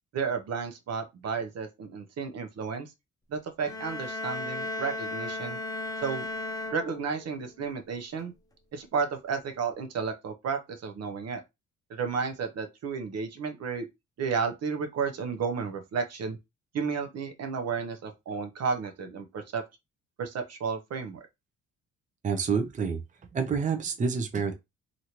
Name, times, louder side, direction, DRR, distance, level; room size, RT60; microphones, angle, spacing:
voice 1, 0.1-2.9 3.3-5.6 6.0-6.3 6.7-8.3 8.7-11.4 11.9-13.9 14.2-16.4 16.7-19.6 20.2-21.2, right 5 dB, 55° right, 0.7 m, -32 dB
sound 1, 3.6-7.4, left 2 dB, 10° left, 0.6 m, -35 dB
voice 2, 22.2-23.0 23.3-24.5, right 5 dB, 25° right, 0.6 m, -28 dB
3.0 x 2.5 x 2.9 m
cardioid pair, 90°, 30 cm